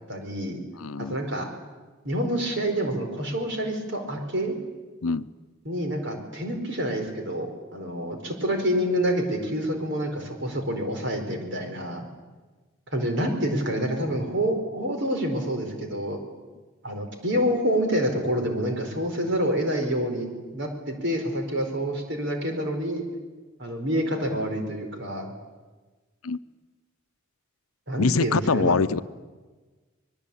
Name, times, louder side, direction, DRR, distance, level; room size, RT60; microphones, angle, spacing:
voice 1, 0.1-0.6 1.0-1.5 2.0-4.6 5.6-12.1 12.9-16.2 16.8-23.0 23.6-25.3 27.9-28.7, equal, 55° right, 4 dB, 4.5 m, -27 dB
voice 2, 0.8-1.2 5.0-5.3 26.2-26.4 28.0-29.0, left 4 dB, 85° left, 13 dB, 0.7 m, -24 dB
26.0 x 20.5 x 8.5 m, 1.3 s
head